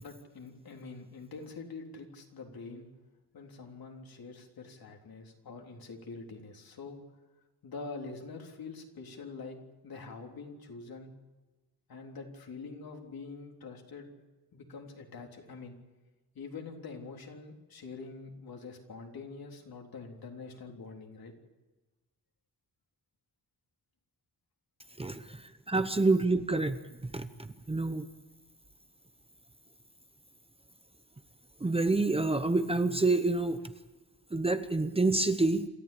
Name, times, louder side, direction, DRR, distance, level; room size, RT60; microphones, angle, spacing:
voice 1, 0.0-2.9 3.3-7.0 7.6-9.6 9.8-11.1 11.9-14.1 14.5-15.8 16.4-21.3, left 4 dB, 70° left, 2 dB, 3.7 m, -45 dB
voice 2, 25.0-28.1 31.6-33.6 34.3-35.7, right 2 dB, 15° right, 10 dB, 0.9 m, -28 dB
27.5 x 14.0 x 8.6 m, 1.2 s
wide cardioid pair, 145°, 37 cm